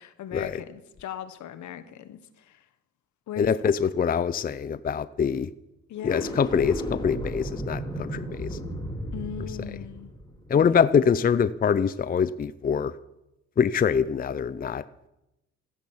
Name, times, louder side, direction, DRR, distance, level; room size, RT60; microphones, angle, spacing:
voice 1, 0.0-2.6 3.3-3.7 5.9-6.4 9.1-10.1 10.5-10.7, left 10 dB, 75° left, 12 dB, 1.4 m, -39 dB
voice 2, 3.4-5.5 6.0-8.6 10.5-13.0 13.6-14.8, left 7 dB, 30° left, 16 dB, 0.5 m, -24 dB
sound 1, 6.0-11.3, equal, 15° left, 2.8 m, -34 dB
14.5 x 10.5 x 7.3 m, 0.93 s
cardioid pair, 90°, 30 cm